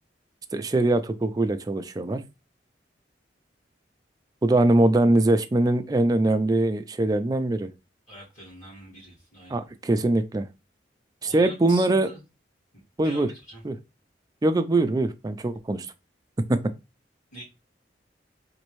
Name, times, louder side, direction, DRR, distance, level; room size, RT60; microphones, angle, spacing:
voice 1, 0.5-2.2 4.4-7.7 9.5-10.5 11.2-12.1 13.0-13.3 13.6-13.7 14.4-15.9 16.5-16.6, right 2 dB, 20° right, 0.4 m, -22 dB
voice 2, 8.1-9.7 11.2-12.2 13.0-13.6 17.3-17.4, right 1 dB, 45° left, 2.5 m, -44 dB
4.1 x 2.6 x 3.0 m
head